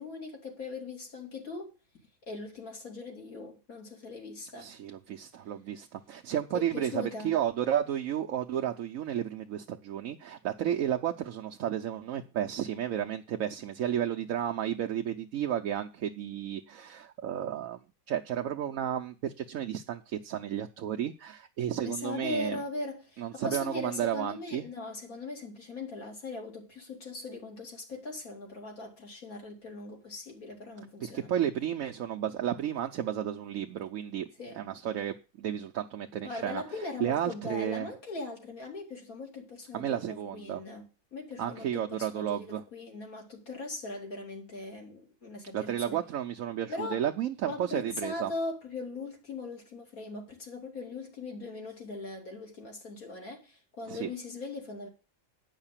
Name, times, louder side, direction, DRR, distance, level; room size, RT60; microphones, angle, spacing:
voice 1, 0.0-1.7 2.3-4.7 6.5-7.3 21.8-31.3 34.4-34.6 36.2-46.0 46.7-47.0 47.5-54.9, left 3 dB, 80° left, 3.5 m, -40 dB
voice 2, 4.6-17.8 18.1-22.6 23.2-24.7 31.0-34.3 34.6-36.6 37.0-37.9 39.7-40.6 41.4-42.6 45.5-48.3 53.9-54.1, right 10 dB, 75° right, 1.1 m, -32 dB
9.7 x 5.8 x 7.3 m
omnidirectional pair, 1.5 m